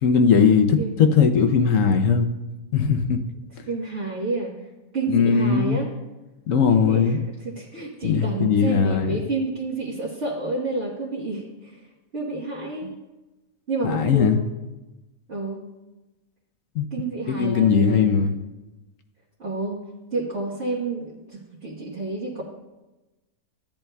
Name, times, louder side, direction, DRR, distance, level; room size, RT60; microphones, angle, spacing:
voice 1, 0.0-2.3 2.7-3.2 5.1-5.8 6.5-7.2 8.0-9.2 12.8-12.9 13.8-14.4 16.7-16.9 17.3-18.3, left 6 dB, 60° left, 6 dB, 1.0 m, -19 dB
voice 2, 3.7-4.5 4.9-5.9 6.7-11.8 12.1-12.9 13.7-14.4 15.3-15.7 16.9-18.2 19.4-19.8 20.1-22.4, right 3 dB, 50° right, -7 dB, 1.6 m, -29 dB
15.0 x 10.5 x 2.3 m, 1.1 s
omnidirectional pair, 1.7 m